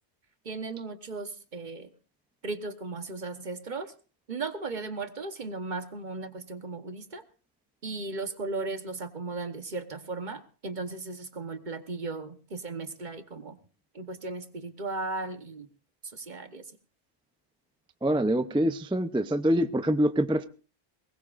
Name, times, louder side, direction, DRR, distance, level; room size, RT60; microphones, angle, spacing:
voice 1, 0.4-1.9 2.4-3.9 4.3-7.2 7.8-13.6 13.9-15.7 16.1-16.6, right 3 dB, 50° right, 10 dB, 1.2 m, -36 dB
voice 2, 18.0-20.5, right 1 dB, 5° right, 11 dB, 0.4 m, -25 dB
22.5 x 20.0 x 2.5 m, 0.37 s
omnidirectional pair, 1.1 m